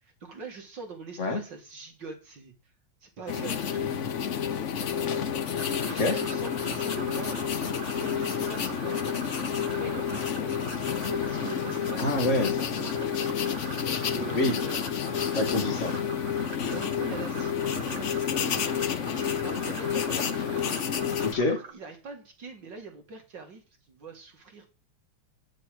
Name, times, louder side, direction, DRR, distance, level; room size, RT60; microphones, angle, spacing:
voice 1, 0.0-2.5 3.0-3.9 4.9-7.5 7.9-10.5 11.0-12.9 13.8-14.8 16.6-20.3 21.7-24.7, right 4 dB, 60° right, 2.4 m, -43 dB
sound 1, 3.3-21.3, left 8 dB, 60° left, 0.8 m, -30 dB
sound 2, 5.6-21.7, right 7 dB, 85° right, 2.2 m, -43 dB
voice 2, 12.0-12.5 14.3-14.6 15.3-16.0 21.2-21.6, left 2 dB, 35° left, 1.9 m, -26 dB
9.4 x 6.9 x 6.6 m
omnidirectional pair, 2.3 m